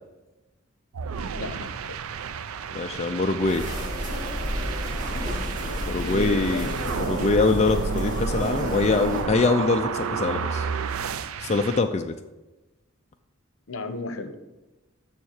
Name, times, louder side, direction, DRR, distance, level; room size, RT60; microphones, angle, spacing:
sound 1, 0.9-11.8, right 6 dB, 80° right, 0.4 m, -32 dB
voice 1, 1.3-2.0 5.8-7.0 13.7-14.4, left 3 dB, 70° left, 9 dB, 0.9 m, -35 dB
voice 2, 2.7-3.7 5.9-6.7 7.0-10.7 11.4-12.1, left 3 dB, 30° left, 4 dB, 0.4 m, -23 dB
sound 2, 3.4-9.2, equal, 40° right, 2.1 m, -31 dB
7.1 x 6.6 x 6.4 m, 1.1 s
head